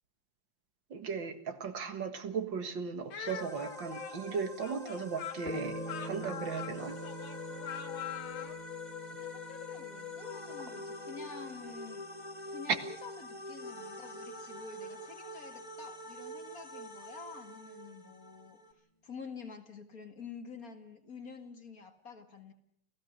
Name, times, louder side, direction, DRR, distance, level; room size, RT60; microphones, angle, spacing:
voice 1, 0.9-7.0, right 6 dB, 60° right, 2.3 m, -37 dB
Speech, 3.1-8.6, left 10 dB, 70° left, 2.3 m, -43 dB
sound 1, 3.3-18.7, left 2 dB, 20° left, 2.1 m, -45 dB
sound 2, 5.4-14.3, right 1 dB, 5° left, 2.5 m, -46 dB
voice 2, 9.1-18.6 19.0-22.5, left 5 dB, 45° left, 2.3 m, -48 dB
28.5 x 16.5 x 6.6 m
omnidirectional pair, 2.3 m